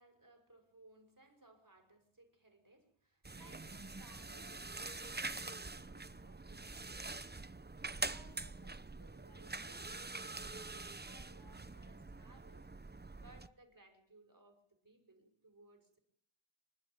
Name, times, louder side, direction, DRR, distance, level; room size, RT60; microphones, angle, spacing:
voice 1, 0.0-7.4 7.9-12.7 13.2-16.0, right 2 dB, 40° right, 5 dB, 5.9 m, -63 dB
sound 1, 3.2-13.5, right 3 dB, 20° right, 0.8 m, -45 dB
27.0 x 12.0 x 9.0 m, 0.66 s
wide cardioid pair, 55°, 49 cm